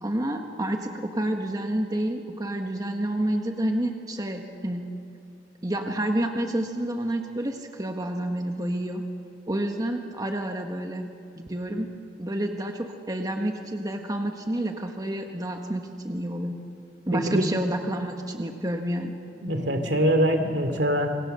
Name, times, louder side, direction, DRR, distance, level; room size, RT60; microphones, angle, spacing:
voice 1, 0.0-4.9 5.6-9.1 9.5-11.9 12.2-16.6 17.1-19.2, right 1 dB, 20° right, 3 dB, 1.4 m, -29 dB
voice 2, 17.1-17.5 19.4-21.1, equal, 70° right, 6 dB, 2.7 m, -23 dB
27.0 x 24.5 x 6.8 m, 2.4 s
head